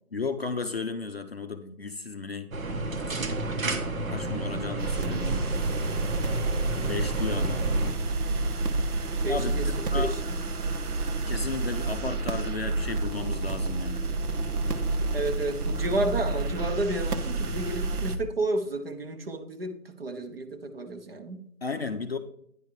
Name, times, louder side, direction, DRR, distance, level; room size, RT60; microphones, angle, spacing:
voice 1, 0.1-2.5 4.1-5.5 6.8-7.7 9.2-10.1 11.3-14.0 21.6-22.2, left 4 dB, 45° left, 7 dB, 0.5 m, -34 dB
sound 1, 2.5-7.9, right 2 dB, 65° right, 1.5 m, -31 dB
voice 2, 4.1-4.6 9.2-10.4 15.1-21.4, right 2 dB, 40° right, 8 dB, 1.0 m, -32 dB
sound 2, 4.8-18.2, right 3 dB, 80° right, 1.1 m, -29 dB
9.8 x 5.1 x 4.7 m, 0.70 s
hypercardioid pair, 170°, 45 cm